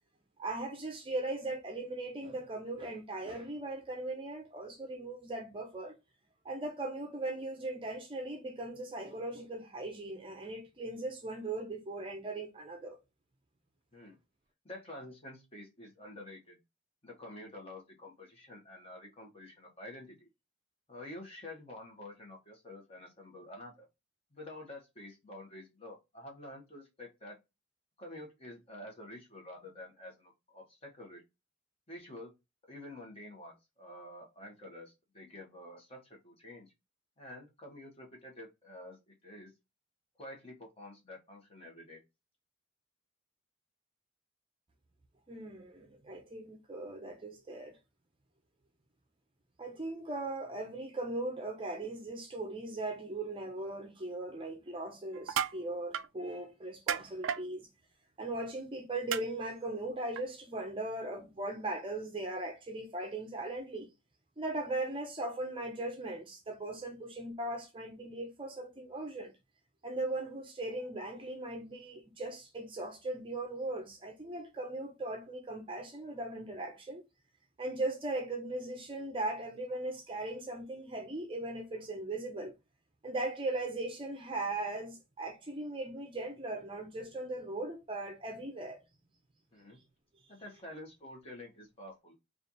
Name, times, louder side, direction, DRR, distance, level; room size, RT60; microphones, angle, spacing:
voice 1, 0.4-6.0 6.4-13.0 45.3-47.8 49.6-57.7 58.2-63.9 64.4-69.3 69.8-77.0 77.6-82.5 83.0-88.8, right 2 dB, 25° right, 0.6 m, -38 dB
voice 2, 14.6-16.6 17.0-20.3 20.9-23.9 24.3-27.4 28.0-31.2 31.9-32.3 32.7-36.7 37.2-39.5 40.2-42.0 89.5-89.8 90.3-92.2, left 1 dB, 30° left, 1.2 m, -49 dB
sound 1, 55.1-55.6 55.9-56.1 56.9-57.4 59.1-59.2 60.2-60.3, right 8 dB, 80° right, 0.3 m, -32 dB
3.2 x 2.5 x 4.1 m
head